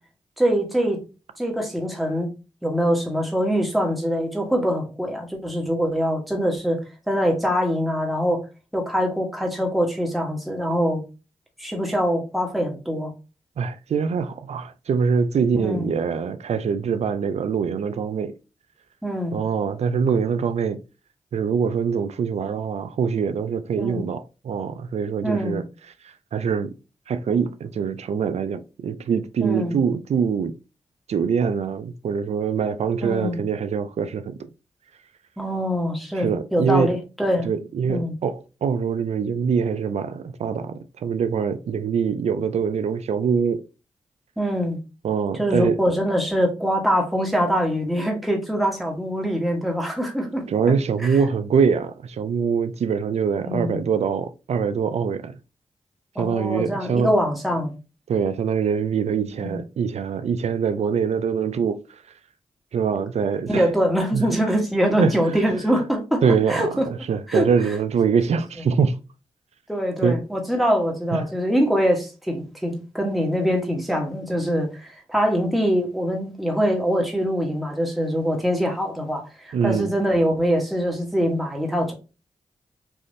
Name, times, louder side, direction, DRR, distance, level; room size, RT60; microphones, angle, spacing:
voice 1, 0.4-1.0 1.4-2.3 2.6-8.4 8.7-11.0 11.6-13.1 15.5-15.9 19.0-19.4 23.8-24.1 25.2-25.6 29.4-29.8 33.0-33.4 35.4-37.5 37.9-38.1 44.4-44.8 45.4-50.4 51.0-51.1 53.4-53.8 56.1-57.7 59.4-59.6 63.5-66.2 66.5-66.9 67.3-67.4 69.7-81.9, equal, ahead, 1.2 m, -23 dB
voice 2, 13.6-18.3 19.3-20.8 21.3-25.6 26.3-26.7 27.1-30.5 31.1-34.5 36.2-36.9 37.4-43.6 45.0-45.8 50.5-55.4 56.2-57.1 58.1-61.8 62.7-63.6 64.1-64.3 65.0-65.1 66.2-69.0 70.0-70.2 71.1-71.2 79.5-79.9, right 6 dB, 65° right, 0.4 m, -24 dB
3.4 x 2.5 x 2.6 m
cardioid pair, 45°, 12 cm